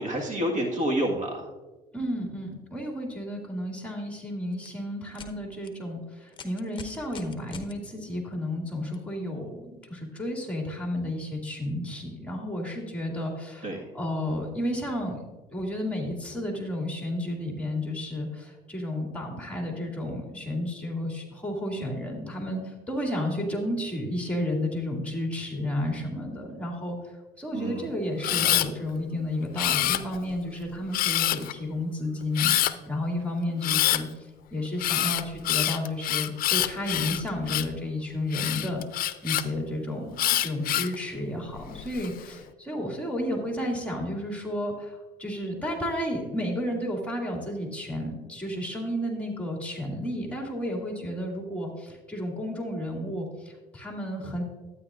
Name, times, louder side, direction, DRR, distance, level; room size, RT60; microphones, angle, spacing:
voice 1, 0.0-1.5 13.6-13.9 27.5-27.9 28.3-28.5, right 1 dB, 50° right, 1 dB, 1.6 m, -29 dB
voice 2, 1.9-27.0 27.4-34.1 34.5-38.8 39.2-54.4, left 1 dB, 5° left, 0 dB, 2.2 m, -32 dB
sound 1, 4.5-4.7 5.1-5.3 5.6-5.7 6.3-7.7 8.9-9.0 9.8-9.9, left 6 dB, 30° left, 0.9 m, -44 dB
Camera, 28.2-28.7 29.6-30.3 30.9-31.5 32.4-32.7 33.6-34.0 34.8-37.8 38.3-39.4 40.2-41.0 41.6-42.1, left 13 dB, 60° left, 0.5 m, -26 dB
12.5 x 9.2 x 2.5 m, 1.2 s
cardioid pair, 110°, 17 cm